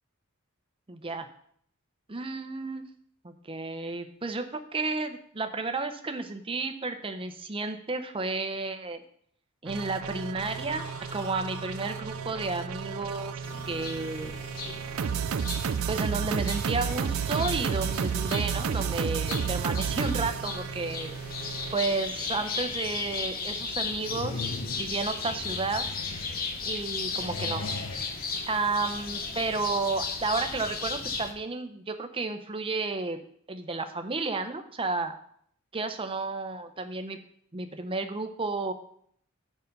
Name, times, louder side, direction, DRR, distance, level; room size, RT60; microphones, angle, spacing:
voice 1, 0.9-1.3 2.1-2.9 3.2-9.0 9.6-13.3 13.7-14.4 15.9-21.1 21.7-25.9 26.6-27.6 28.5-33.2 33.5-35.1 35.7-37.2 37.5-38.7, right 3 dB, 25° right, 7 dB, 0.7 m, -32 dB
sound 1, 9.7-21.7, right 7 dB, 70° right, 0.4 m, -32 dB
sound 2, 10.5-14.7 15.3-15.4 16.4-19.0 19.4-19.8 20.1-20.2 20.7-23.5 23.9-26.7 27.0-28.3, left 3 dB, 70° left, 0.9 m, -43 dB
sound 3, 13.4-31.3, left 4 dB, 40° left, 0.9 m, -36 dB
6.9 x 5.5 x 5.3 m, 0.65 s
head